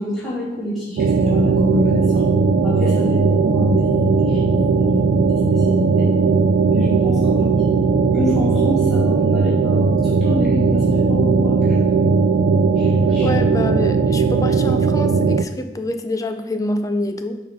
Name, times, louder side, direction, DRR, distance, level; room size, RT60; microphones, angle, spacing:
voice 1, 0.0-2.2 2.6-6.1 6.6-7.6 8.1-11.7 12.8-13.3, left 1 dB, ahead, -9 dB, 2.2 m, -27 dB
sound 1, 1.0-15.4, right 4 dB, 90° right, 0.3 m, -17 dB
voice 2, 13.2-17.4, left 1 dB, 20° left, 7 dB, 0.4 m, -26 dB
5.1 x 4.0 x 5.4 m, 1.0 s
head